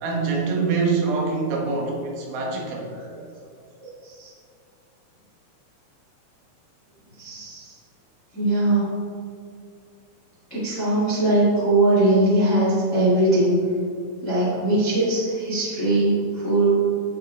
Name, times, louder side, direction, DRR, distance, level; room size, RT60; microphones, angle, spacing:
voice 1, 0.0-2.9, right 4 dB, 80° right, -2 dB, 3.7 m, -24 dB
voice 2, 7.2-7.6 8.3-8.9 10.5-13.6 14.2-16.9, right 2 dB, 80° left, -9 dB, 0.6 m, -20 dB
13.5 x 4.9 x 3.3 m, 2.3 s
omnidirectional pair, 5.5 m